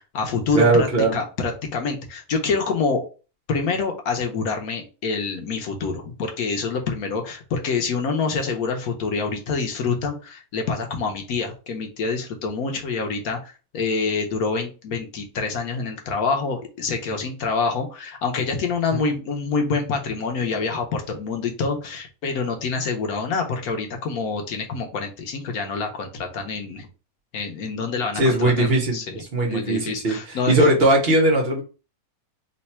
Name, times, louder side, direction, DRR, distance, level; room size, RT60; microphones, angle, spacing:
voice 1, 0.0-3.0 3.5-26.9 27.3-28.7 28.9-30.7, left 4 dB, 90° left, 1.3 m, -26 dB
voice 2, 0.5-1.1 28.1-29.0 29.3-31.6, right 2 dB, 50° right, 1.0 m, -19 dB
3.2 x 2.2 x 4.2 m
omnidirectional pair, 1.5 m